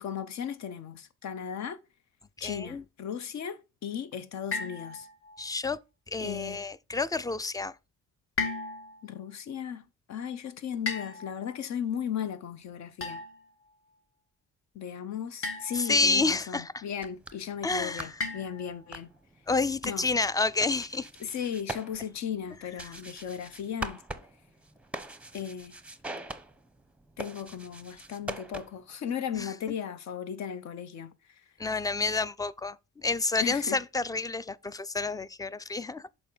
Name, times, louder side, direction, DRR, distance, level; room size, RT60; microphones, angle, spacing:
voice 1, 0.0-1.8 2.4-5.1 6.2-6.6 9.0-13.2 14.7-19.1 19.8-20.1 21.2-24.0 25.3-25.7 27.2-31.4 33.4-33.8, left 8 dB, 65° left, 0.8 m, -36 dB
voice 2, 2.4-2.8 5.4-5.8 6.1-7.8 15.7-16.8 17.6-18.1 19.5-21.1 22.8-23.0 29.3-29.5 31.6-36.1, left 3 dB, 15° left, 0.3 m, -29 dB
sound 1, 4.5-5.4 8.4-9.1 10.9-11.6 13.0-13.5 15.4-16.1 18.2-18.9, left 4 dB, 45° left, 1.4 m, -35 dB
sound 2, 16.9-28.9, right 1 dB, 5° right, 0.7 m, -43 dB
7.0 x 4.3 x 3.9 m
cardioid pair, 90°, 30 cm